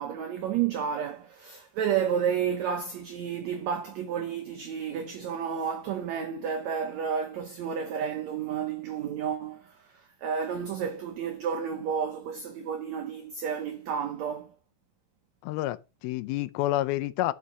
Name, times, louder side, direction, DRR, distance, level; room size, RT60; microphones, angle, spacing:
voice 1, 0.0-14.5, right 7 dB, 85° right, 1.5 m, -31 dB
voice 2, 15.4-17.3, left 15 dB, 80° left, 2.5 m, -29 dB
11.5 x 5.6 x 4.9 m
omnidirectional pair, 4.4 m